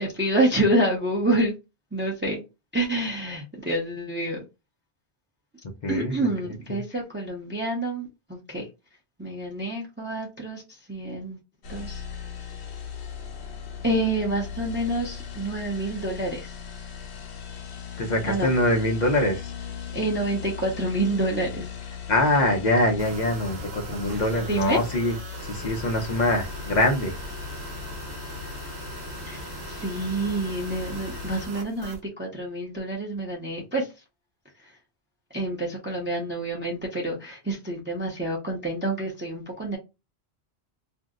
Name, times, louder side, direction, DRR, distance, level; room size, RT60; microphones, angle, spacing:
voice 1, 0.0-1.6 1.9-2.4 2.7-4.4 5.9-8.7 9.2-10.6 10.9-11.4 11.7-12.0 13.8-16.6 18.2-18.5 19.9-21.7 24.4-24.8 29.2-33.9 35.3-39.8, right 1 dB, 15° right, 0.6 m, -28 dB
voice 2, 5.8-6.3 6.7-6.8 18.0-19.5 22.1-25.1 25.5-27.1, left 1 dB, 50° left, 0.7 m, -24 dB
sound 1, 11.6-31.5, left 7 dB, 85° left, 0.9 m, -38 dB
Flash memory work, 23.0-32.0, right 2 dB, 70° right, 1.0 m, -40 dB
2.6 x 2.0 x 3.6 m
omnidirectional pair, 1.1 m